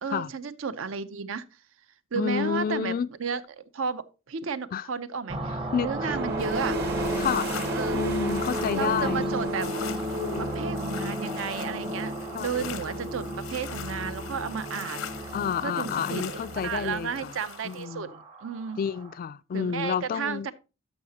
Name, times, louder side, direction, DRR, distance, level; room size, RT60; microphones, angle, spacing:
voice 1, 0.0-1.4 2.1-2.9 3.2-6.8 7.7-8.0 8.7-9.7 10.5-12.1 12.4-15.3 15.6-18.8 19.5-20.5, right 6 dB, 70° right, 0.6 m, -33 dB
voice 2, 2.1-3.1 4.7-4.9 5.7-6.2 7.2-7.5 7.9-9.3 10.2-10.7 12.3-13.0 15.3-17.3 17.6-18.1 18.8-20.5, left 7 dB, 45° left, 0.3 m, -30 dB
sound 1, 5.3-19.2, right 2 dB, 25° right, 0.7 m, -38 dB
sound 2, 5.9-17.4, equal, 55° right, 1.3 m, -32 dB
sound 3, 6.4-17.8, left 9 dB, 85° left, 0.7 m, -43 dB
12.5 x 5.6 x 2.8 m
head